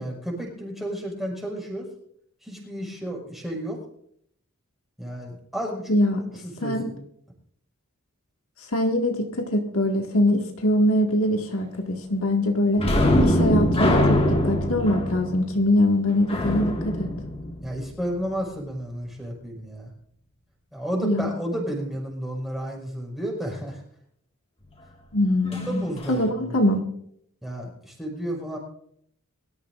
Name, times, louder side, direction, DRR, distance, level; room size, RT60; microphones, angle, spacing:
voice 1, 0.0-1.9 2.4-3.8 5.0-7.0 17.6-19.9 20.7-23.8 25.5-26.6 27.4-28.6, equal, ahead, -2 dB, 5.5 m, -32 dB
voice 2, 5.9-6.2 6.6-6.9 8.7-12.8 13.2-17.1 21.0-21.3 25.1-25.8 26.1-26.8, left 1 dB, 65° left, 2 dB, 2.0 m, -23 dB
sound 1, 12.8-18.2 25.5-25.7 26.0-26.2, left 1 dB, 25° left, 2.0 m, -23 dB
23.5 x 14.0 x 2.6 m, 0.67 s
head